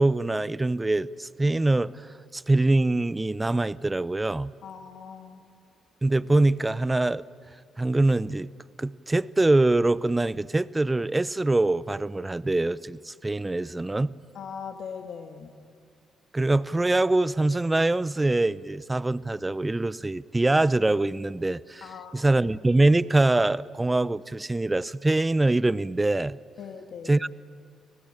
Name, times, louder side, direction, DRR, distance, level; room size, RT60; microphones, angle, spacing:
voice 1, 0.0-4.5 6.0-7.2 7.8-8.5 8.8-14.1 16.3-26.4 27.1-27.3, right 2 dB, 20° right, 0.6 m, -24 dB
voice 2, 4.6-5.4 14.3-15.5 21.8-22.3 26.6-27.2, left 6 dB, 65° left, 1.7 m, -40 dB
25.5 x 18.5 x 8.8 m
supercardioid pair, 65°, 0 cm